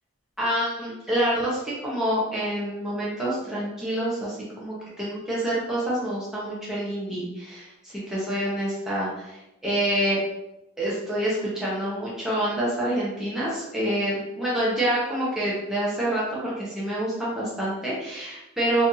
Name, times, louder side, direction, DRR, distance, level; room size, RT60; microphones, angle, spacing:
voice 1, 0.4-10.2 10.8-18.8, right 1 dB, ahead, -8 dB, 0.6 m, -27 dB
2.7 x 2.5 x 3.7 m, 0.93 s
head